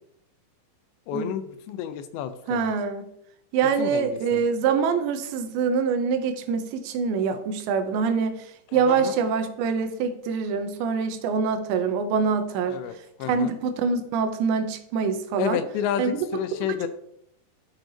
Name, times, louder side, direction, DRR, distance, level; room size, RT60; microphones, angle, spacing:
voice 1, 1.1-2.7 3.8-4.4 8.9-9.1 12.7-12.9 13.2-13.5 15.4-16.9, left 9 dB, 80° left, 11 dB, 2.8 m, -30 dB
voice 2, 2.5-3.1 3.5-12.8 13.3-15.6 16.0-16.9, right 5 dB, 80° right, 8 dB, 3.0 m, -25 dB
12.5 x 6.5 x 3.9 m, 0.75 s
omnidirectional pair, 5.3 m